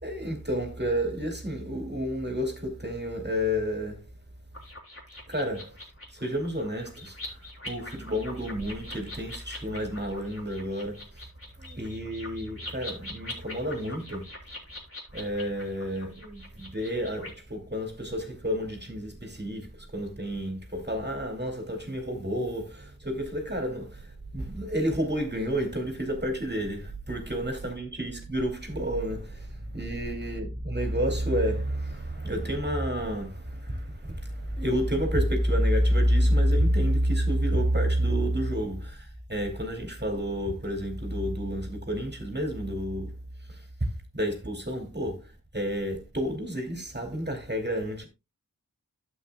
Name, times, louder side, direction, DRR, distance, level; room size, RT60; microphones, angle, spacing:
voice 1, 0.0-4.1 5.3-5.7 6.1-7.4 7.6-11.3 11.6-14.3 15.1-43.2 43.5-43.9 44.1-48.1, equal, 30° right, 2.6 m, -29 dB
sound 1, 4.5-17.3, left 1 dB, 40° left, 3.6 m, -43 dB
12.0 x 8.0 x 2.3 m
wide cardioid pair, 50°, 34 cm